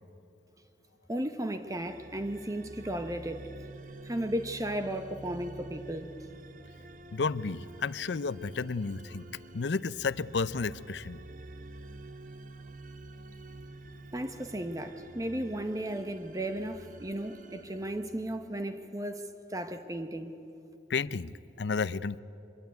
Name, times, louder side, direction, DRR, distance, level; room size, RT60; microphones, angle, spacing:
voice 1, 1.1-3.4 4.0-6.1 14.1-20.3, right 1 dB, 20° right, 8 dB, 1.0 m, -35 dB
sound 1, 1.7-18.8, right 2 dB, 50° right, 1.2 m, -48 dB
voice 2, 7.1-9.2 9.5-11.2 20.9-22.2, left 4 dB, 80° left, 18 dB, 0.6 m, -32 dB
24.5 x 22.0 x 9.5 m, 2.8 s
head